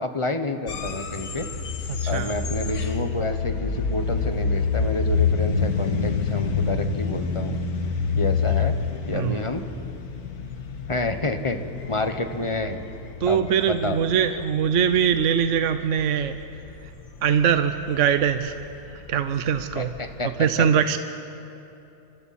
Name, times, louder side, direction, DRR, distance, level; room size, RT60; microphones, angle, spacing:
voice 1, 0.0-1.5 2.1-7.6 8.2-8.8 9.1-9.6 10.9-11.6 11.9-12.8 13.3-14.0 19.7-20.3 20.6-20.7, left 2 dB, 25° left, 7 dB, 1.0 m, -29 dB
sound 1, 0.7-20.2, left 5 dB, 85° left, 1.9 m, -28 dB
voice 2, 2.0-2.3 9.1-9.4 13.2-16.4 17.2-18.6 19.1-19.9 20.4-21.0, right 8 dB, 60° right, 9 dB, 1.0 m, -22 dB
29.5 x 26.0 x 4.2 m, 2.9 s
omnidirectional pair, 1.6 m